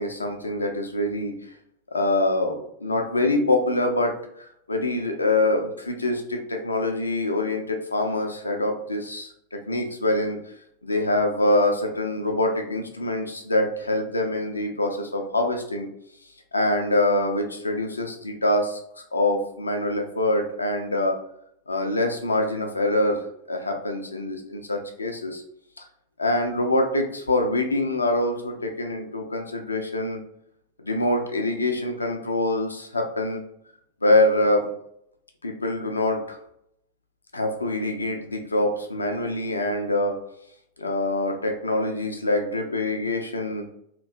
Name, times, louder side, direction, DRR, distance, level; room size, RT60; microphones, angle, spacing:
voice 1, 0.0-1.4 1.9-10.4 10.8-15.9 16.5-18.8 19.1-21.2 21.7-25.4 26.2-30.2 30.8-33.4 34.0-34.7 35.4-36.4 37.3-40.2 40.8-43.7, left 1 dB, 80° left, 4 dB, 0.5 m, -25 dB
2.9 x 2.6 x 2.5 m, 0.74 s
figure-of-eight pair, 90°, 0 cm